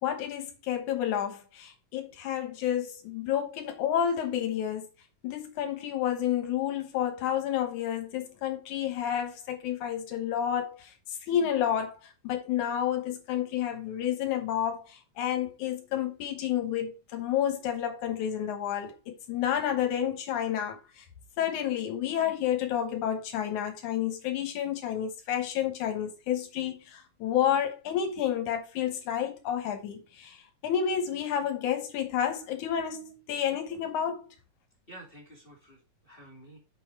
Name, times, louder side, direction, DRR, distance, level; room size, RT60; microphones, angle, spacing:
voice 1, 0.0-4.9 5.2-10.9 11.3-12.0 12.2-21.0 21.4-34.3, left 9 dB, 85° left, 2.6 m, -30 dB
voice 2, 34.9-36.6, right 1 dB, 20° left, 2.2 m, -50 dB
7.2 x 5.9 x 4.6 m
omnidirectional pair, 3.4 m